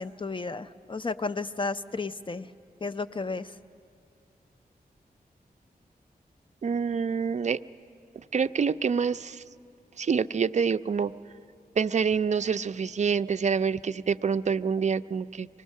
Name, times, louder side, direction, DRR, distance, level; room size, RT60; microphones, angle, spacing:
voice 1, 0.0-2.5 2.8-3.5, left 3 dB, 30° left, 12 dB, 0.6 m, -33 dB
voice 2, 6.6-7.6 8.3-9.4 10.0-11.1 11.8-15.5, right 6 dB, 50° right, 12 dB, 0.4 m, -26 dB
24.5 x 19.0 x 6.5 m, 2.5 s
wide cardioid pair, 70°, 16 cm